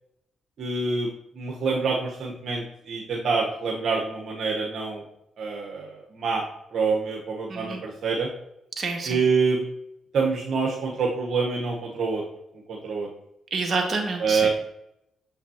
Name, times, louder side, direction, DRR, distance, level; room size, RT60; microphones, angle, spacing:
voice 1, 0.6-5.0 5.4-6.4 6.7-8.3 9.1-9.6 10.1-12.2 12.7-13.1 14.2-14.5, right 4 dB, 65° right, -2 dB, 1.0 m, -26 dB
voice 2, 7.5-7.8 8.8-9.2 13.5-14.5, right 3 dB, 45° right, 2 dB, 1.7 m, -28 dB
7.0 x 5.7 x 2.8 m, 0.83 s
supercardioid pair, 60°, 0 cm